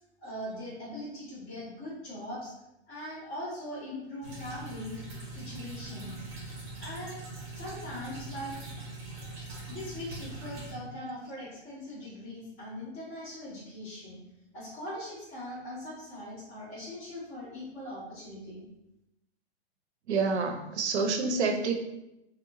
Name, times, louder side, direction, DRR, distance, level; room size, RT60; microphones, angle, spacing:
voice 1, 0.2-2.5 2.9-5.0 5.3-6.1 6.8-7.2 7.5-8.6 9.7-14.2 14.5-18.6, left 1 dB, 10° left, -12 dB, 0.4 m, -41 dB
sound 1, 4.2-10.7, right 2 dB, 25° right, 0.6 m, -42 dB
voice 2, 20.1-21.7, right 4 dB, 80° right, 4 dB, 0.6 m, -28 dB
2.8 x 2.2 x 2.6 m, 0.88 s
hypercardioid pair, 155°, 33 cm